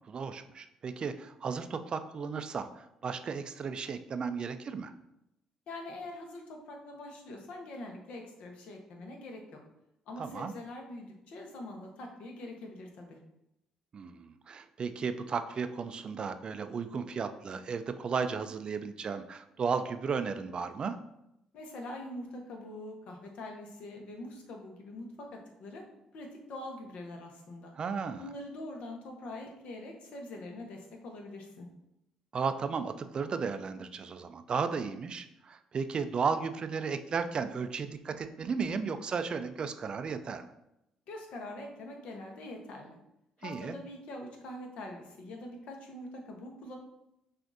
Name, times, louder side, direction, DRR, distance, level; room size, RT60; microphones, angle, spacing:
voice 1, 0.1-4.9 10.2-10.5 13.9-21.0 27.7-28.3 32.3-40.5 43.4-43.8, right 5 dB, 45° right, 10 dB, 0.3 m, -34 dB
voice 2, 5.7-9.6 10.1-13.2 21.5-25.8 26.1-27.7 28.2-31.7 41.1-43.0 43.4-46.8, left 1 dB, 70° left, 2 dB, 0.9 m, -44 dB
5.9 x 2.5 x 2.6 m, 0.84 s
supercardioid pair, 60°, 2 cm